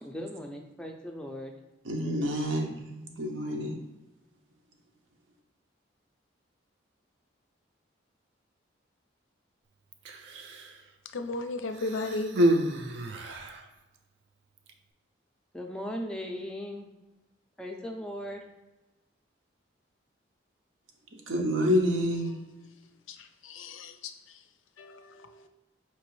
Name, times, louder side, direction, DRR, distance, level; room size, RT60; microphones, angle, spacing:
voice 1, 0.0-1.5 15.5-16.9 17.6-18.4, equal, 5° left, 0.3 m, -38 dB
voice 2, 1.8-3.8 21.1-22.3, equal, 90° right, 0.8 m, -28 dB
Human voice, 9.9-10.8 11.7-13.7 14.6-14.7, right 1 dB, 65° right, 0.4 m, -29 dB
voice 3, 11.1-12.3 23.1-24.4 24.8-25.5, left 2 dB, 85° left, 0.4 m, -36 dB
4.6 x 3.0 x 3.0 m
head